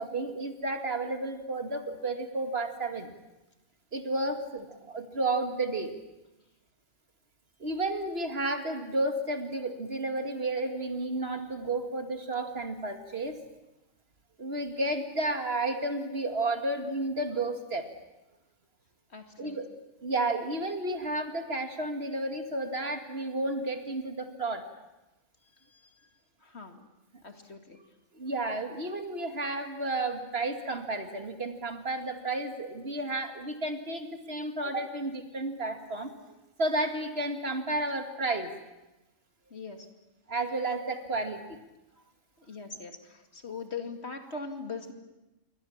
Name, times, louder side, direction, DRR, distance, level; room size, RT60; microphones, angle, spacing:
voice 1, 0.0-3.1 3.9-6.0 7.6-13.4 14.4-17.9 19.4-19.7 20.0-24.7 28.1-36.1 36.6-38.5 40.3-41.6, right 2 dB, 50° right, 6 dB, 2.4 m, -32 dB
voice 2, 19.1-19.6 26.4-26.8 27.2-27.8 39.5-39.9 42.5-44.9, left 4 dB, 55° left, 6 dB, 2.5 m, -40 dB
28.5 x 22.5 x 7.3 m, 0.99 s
omnidirectional pair, 1.3 m